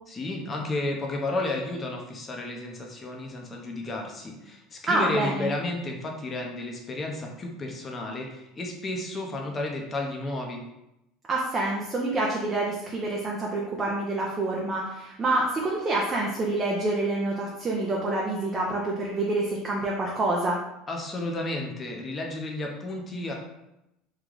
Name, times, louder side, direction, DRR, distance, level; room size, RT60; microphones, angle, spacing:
voice 1, 0.1-10.6 20.9-23.3, left 2 dB, 25° left, 1 dB, 0.7 m, -32 dB
voice 2, 4.9-5.5 11.3-20.6, right 2 dB, 25° right, -2 dB, 0.6 m, -27 dB
3.1 x 2.3 x 3.8 m, 0.88 s
supercardioid pair, 125°, 0 cm